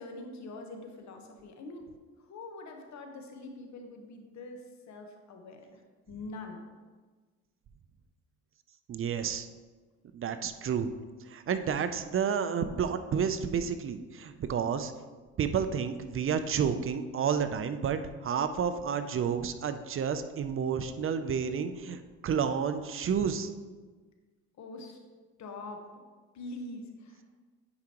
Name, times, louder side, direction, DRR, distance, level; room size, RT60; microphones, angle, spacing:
voice 1, 0.0-1.9 2.2-5.8 6.1-6.6 24.6-25.0 25.4-25.8 26.3-27.2, left 2 dB, 70° left, 3 dB, 1.1 m, -44 dB
voice 2, 8.9-9.5 10.1-10.9 11.3-14.9 15.4-23.5, right 7 dB, 45° right, 10 dB, 0.5 m, -30 dB
9.6 x 5.0 x 2.9 m, 1.4 s
cardioid pair, 90°, 30 cm